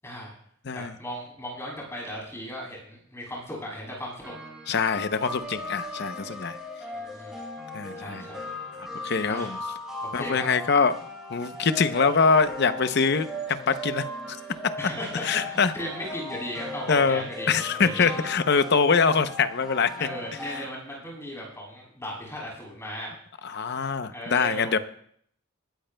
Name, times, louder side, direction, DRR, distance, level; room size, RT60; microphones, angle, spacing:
voice 1, 0.0-0.3 0.7-4.3 6.9-7.4 8.0-8.4 9.3-9.5 10.0-10.5 14.8-18.3 20.0-23.1 24.1-24.7, equal, 15° left, -3 dB, 7.1 m, -37 dB
sound 1, 4.2-20.7, left 1 dB, 5° right, 5.4 m, -38 dB
voice 2, 4.7-6.6 7.7-8.2 9.0-9.6 10.1-11.0 11.3-14.4 15.2-15.7 16.9-20.1 20.5-20.6 23.4-24.8, left 5 dB, 55° left, 10 dB, 0.7 m, -24 dB
20.5 x 14.0 x 2.3 m, 0.64 s
head